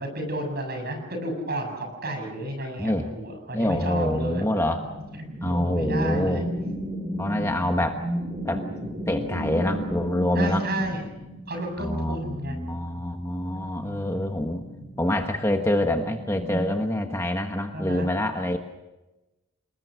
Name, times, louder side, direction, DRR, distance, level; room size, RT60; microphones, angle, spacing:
voice 1, 0.0-4.5 5.4-6.7 10.4-11.0 11.5-12.6 13.5-14.2 17.7-18.1, right 1 dB, 45° right, 4 dB, 7.4 m, -32 dB
voice 2, 2.8-3.1 3.5-4.9 5.4-6.4 7.2-8.0 8.4-8.6 9.1-10.6 11.8-14.6 15.0-18.6, left 1 dB, 10° left, 4 dB, 1.3 m, -26 dB
sound 1, 3.6-16.7, equal, 25° right, 2.6 m, -34 dB
29.5 x 20.5 x 6.4 m, 1.0 s
head